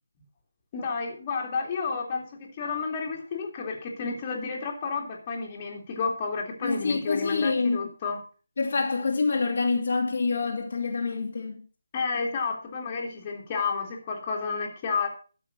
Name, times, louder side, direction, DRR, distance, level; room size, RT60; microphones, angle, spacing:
voice 1, 0.7-8.2 11.9-15.1, left 5 dB, 25° left, 2.5 m, -31 dB
voice 2, 6.6-7.9 8.6-11.6, left 4 dB, 55° left, 2.0 m, -26 dB
13.0 x 5.5 x 6.1 m
figure-of-eight pair, 155°, 0 cm